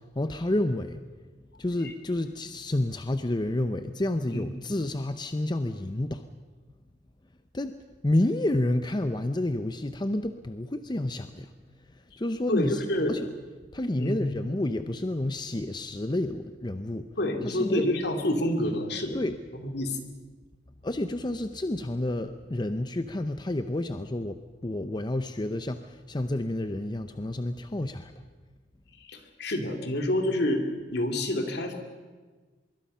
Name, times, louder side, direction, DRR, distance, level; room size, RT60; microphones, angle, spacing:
voice 1, 0.2-1.0 1.6-6.2 7.5-7.8 8.0-11.5 11.9-13.3 13.7-17.1 17.4-17.9 19.1-19.4 20.8-28.1, left 1 dB, 25° left, 9 dB, 0.7 m, -29 dB
voice 2, 12.5-13.2 14.0-14.2 17.2-19.2 19.5-20.0 29.0-30.7 30.9-31.8, left 1 dB, 65° left, 5 dB, 2.8 m, -28 dB
24.5 x 23.0 x 5.6 m, 1.4 s
head